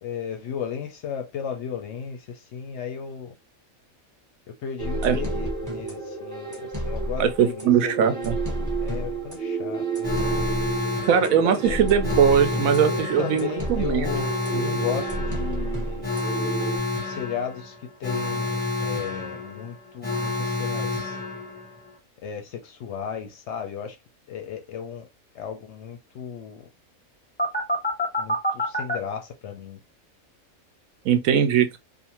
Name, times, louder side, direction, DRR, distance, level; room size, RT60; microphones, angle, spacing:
voice 1, 0.0-3.3 4.6-10.4 11.5-11.8 13.2-16.1 17.0-21.2 22.2-24.0 24.3-25.1 25.3-26.6 28.2-29.8, left 8 dB, 65° left, 0.7 m, -35 dB
sound 1, 4.8-16.8, right 3 dB, 15° right, 1.0 m, -30 dB
voice 2, 7.2-8.4 11.0-14.2 31.0-31.8, right 8 dB, 80° right, 1.0 m, -21 dB
Alarm, 10.0-21.9 27.4-29.0, left 2 dB, 10° left, 0.5 m, -29 dB
2.5 x 2.5 x 2.9 m
omnidirectional pair, 1.4 m